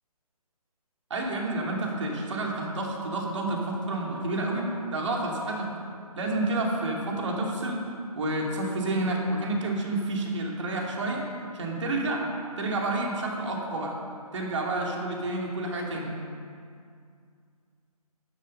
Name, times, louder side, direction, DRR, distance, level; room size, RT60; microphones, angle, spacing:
voice 1, 1.1-5.7 6.2-7.8 8.2-12.2 12.6-14.0 14.3-16.2, right 2 dB, 50° right, -1 dB, 2.8 m, -29 dB
13.5 x 11.5 x 5.5 m, 2.3 s
figure-of-eight pair, 150°, 19 cm